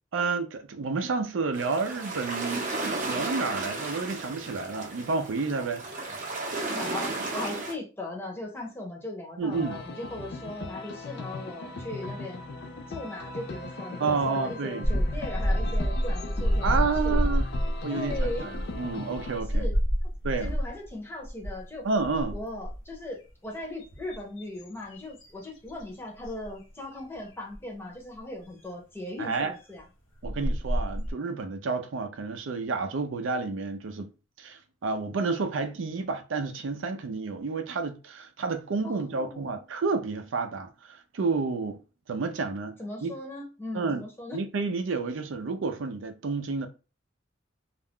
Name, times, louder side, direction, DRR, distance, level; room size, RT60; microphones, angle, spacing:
voice 1, 0.1-2.7 3.1-5.8 9.4-9.8 14.0-14.9 16.6-17.5 17.8-19.7 20.2-20.6 21.8-22.4 29.2-29.5 30.2-34.1 34.4-41.8 42.1-43.1 43.7-44.0 44.3-46.7, right 4 dB, 75° right, 0.5 m, -30 dB
sound 1, 1.5-7.7, right 2 dB, 45° right, 0.7 m, -34 dB
voice 2, 6.7-12.4 12.9-17.2 17.9-18.5 19.5-19.7 20.4-21.8 22.3-29.8 38.8-39.6 42.8-44.4, left 2 dB, 10° left, 0.8 m, -38 dB
sound 2, 9.5-19.4, left 3 dB, 60° left, 0.4 m, -39 dB
sound 3, 14.8-20.9 21.2-21.6 22.0-22.9 23.6-25.8 26.2-26.5 27.5-27.6 29.8-29.9 30.2-31.1, equal, 90° left, 0.8 m, -28 dB
2.4 x 2.2 x 3.5 m
head